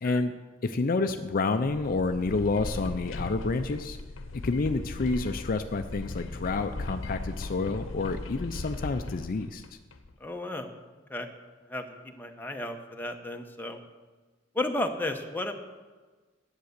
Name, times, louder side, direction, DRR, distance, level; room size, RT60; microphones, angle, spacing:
voice 1, 0.0-0.3 0.6-4.0 4.3-9.6, left 3 dB, 45° left, 8 dB, 0.5 m, -29 dB
sound 1, 1.6-10.1, left 2 dB, 85° left, 0.8 m, -38 dB
voice 2, 10.2-10.7 11.1-11.3 11.7-13.8 14.5-15.5, left 2 dB, 10° left, 4 dB, 0.9 m, -33 dB
10.5 x 8.2 x 6.6 m, 1.3 s
head